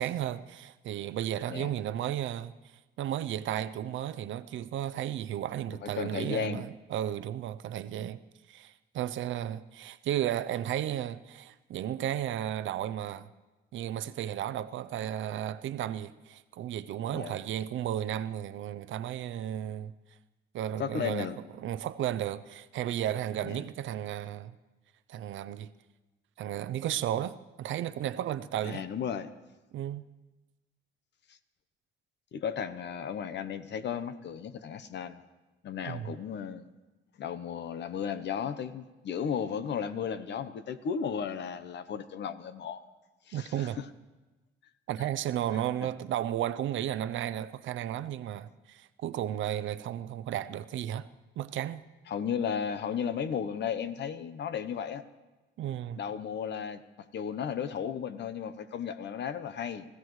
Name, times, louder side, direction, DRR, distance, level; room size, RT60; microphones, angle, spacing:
voice 1, 0.0-2.5 3.0-8.2 8.5-13.3 13.7-19.9 20.5-21.3 21.6-24.6 25.1-25.7 26.4-28.8 29.7-30.0 35.9-36.1 43.3-43.8 44.9-51.1 51.4-51.8 55.6-56.0, right 11 dB, 75° right, 0.6 m, -34 dB
voice 2, 5.8-6.6 17.1-17.4 20.8-21.4 23.4-23.6 28.6-29.3 32.3-35.2 35.6-36.6 37.2-42.8 43.3-43.8 45.0-45.1 45.5-45.9 52.1-55.0 55.9-56.8 57.1-59.9, left 7 dB, 60° left, 0.9 m, -34 dB
25.0 x 15.5 x 3.2 m
cardioid pair, 90°, 20 cm